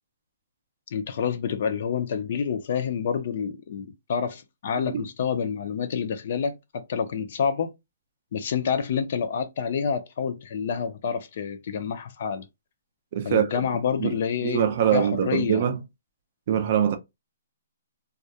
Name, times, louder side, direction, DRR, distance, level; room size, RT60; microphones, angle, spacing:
voice 1, 0.9-7.7 8.3-12.5 13.2-15.6, left 7 dB, 40° left, 0.4 m, -28 dB
voice 2, 13.1-13.6 14.0-15.8 16.5-17.0, right 9 dB, 35° right, 0.4 m, -24 dB
2.3 x 2.1 x 2.7 m
hypercardioid pair, 175°, 0 cm